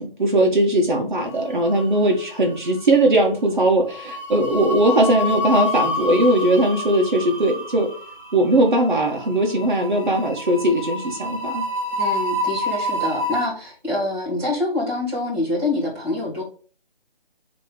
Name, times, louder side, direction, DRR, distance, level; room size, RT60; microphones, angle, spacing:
voice 1, 0.0-7.9 8.3-11.7, right 1 dB, 50° right, 0 dB, 1.5 m, -19 dB
sound 1, 1.4-2.2 2.5-2.7 3.9-13.5, left 1 dB, 30° left, 2.7 m, -28 dB
voice 2, 11.9-16.4, left 2 dB, 10° right, -4 dB, 2.8 m, -26 dB
7.5 x 3.4 x 5.2 m, 0.39 s
hypercardioid pair, 175°, 30 cm